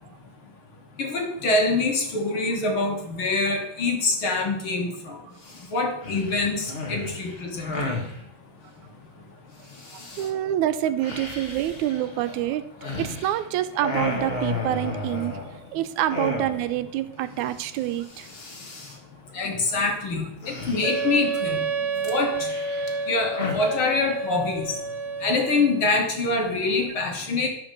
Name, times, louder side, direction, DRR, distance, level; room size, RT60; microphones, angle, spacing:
voice 1, 1.0-5.2 5.7-7.7 19.3-21.6 22.0-22.5 23.1-24.8 25.2-27.5, left 3 dB, 50° left, 2 dB, 2.1 m, -25 dB
sound 1, 5.4-5.7 6.0-8.2 9.7-10.3 11.0-13.4 13.7-15.7 16.1-16.8 17.1-17.2 17.5-17.8 18.0-19.0 20.4-21.3 22.0-23.7, left 2 dB, 35° left, 1.0 m, -33 dB
voice 2, 9.9-12.7 13.0-15.4 15.7-18.3, right 12 dB, 85° right, 11 dB, 2.0 m, -27 dB
Wind instrument woodwind instrument, 20.8-25.9, right 4 dB, 60° right, 1.8 m, -29 dB
13.0 x 5.1 x 6.7 m, 0.74 s
omnidirectional pair, 3.3 m